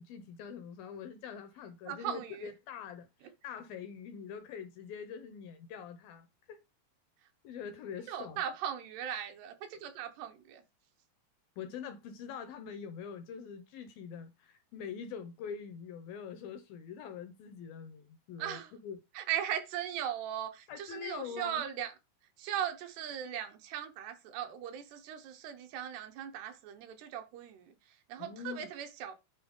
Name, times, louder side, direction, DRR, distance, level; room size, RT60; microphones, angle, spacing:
voice 1, 0.0-6.6 7.4-8.4 9.7-9.9 11.6-19.0 20.7-21.6 28.2-28.7, left 7 dB, 80° left, 2.1 m, -44 dB
voice 2, 1.9-2.5 8.1-10.6 18.4-18.7 19.1-21.9 22.4-29.1, right 10 dB, 80° right, 2.9 m, -38 dB
9.3 x 4.1 x 3.6 m
omnidirectional pair, 4.9 m